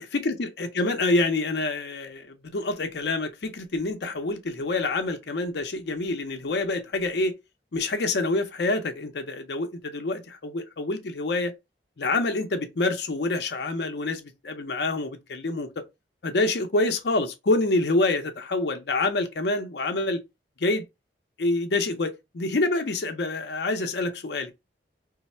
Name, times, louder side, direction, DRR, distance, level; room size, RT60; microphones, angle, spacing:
voice 1, 0.0-7.3 7.7-11.5 12.0-15.8 16.2-20.2 20.6-20.8 21.4-24.5, left 2 dB, 65° left, 0.6 m, -27 dB
3.1 x 2.0 x 4.2 m
head